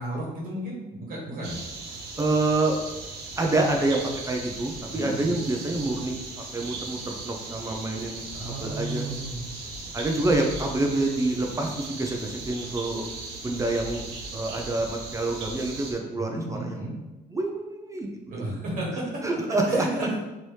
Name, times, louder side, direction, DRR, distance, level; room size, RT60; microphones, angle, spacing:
voice 1, 0.0-1.6 4.9-5.3 8.3-9.5 16.1-16.9 18.3-19.2 19.7-20.2, right 1 dB, 55° right, -4 dB, 1.4 m, -33 dB
sound 1, 1.4-15.9, right 3 dB, 85° right, 0.7 m, -38 dB
voice 2, 2.2-2.8 3.4-6.2 6.5-9.1 9.9-13.1 13.4-14.0 14.3-16.8 17.3-18.2 19.2-19.8, right 2 dB, 20° right, 1 dB, 0.3 m, -27 dB
3.1 x 2.7 x 3.2 m, 1.1 s
cardioid pair, 110°, 17 cm